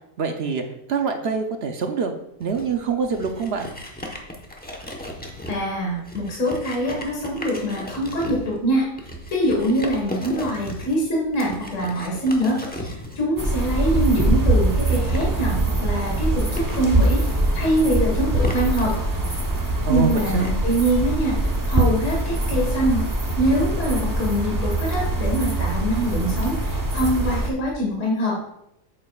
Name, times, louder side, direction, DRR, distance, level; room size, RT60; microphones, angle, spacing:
voice 1, 0.2-0.6 0.9-2.1 2.4-3.7 19.8-20.5, right 5 dB, 55° right, 5 dB, 0.7 m, -24 dB
sound 1, 2.4-20.5, left 1 dB, 10° left, 0.8 m, -37 dB
voice 2, 5.5-8.8 9.3-17.2 17.5-18.9 19.9-21.4 21.7-23.0 23.4-28.4, right 1 dB, 55° left, -2 dB, 1.9 m, -24 dB
sound 2, 13.4-27.5, right 2 dB, 20° right, 0.6 m, -23 dB
9.2 x 7.4 x 2.4 m, 0.80 s
omnidirectional pair, 1.5 m